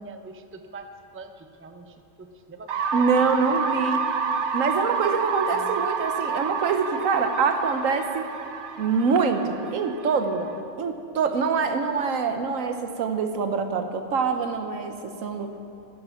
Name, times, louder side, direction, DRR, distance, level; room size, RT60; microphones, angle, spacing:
voice 1, 0.0-2.8 3.2-3.9 5.5-5.9, right 3 dB, 15° right, 7 dB, 0.4 m, -44 dB
sound 1, 2.7-10.5, right 5 dB, 65° right, 1.1 m, -29 dB
voice 2, 2.9-4.0 4.5-8.3 8.8-10.5 10.8-15.5, right 5 dB, 90° right, 7 dB, 1.3 m, -25 dB
16.0 x 9.4 x 5.9 m, 2.8 s
omnidirectional pair, 1.3 m